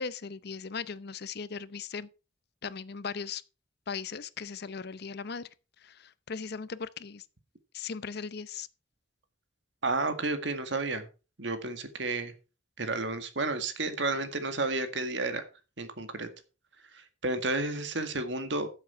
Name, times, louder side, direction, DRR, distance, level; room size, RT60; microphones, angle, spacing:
voice 1, 0.0-2.1 2.6-3.4 3.9-5.5 5.8-7.2 7.7-8.7, left 5 dB, 55° left, 0.6 m, -38 dB
voice 2, 9.8-11.1 11.4-12.3 12.8-15.4 15.8-16.3 16.9-18.7, right 2 dB, 65° right, 1.8 m, -31 dB
13.5 x 7.6 x 4.4 m
head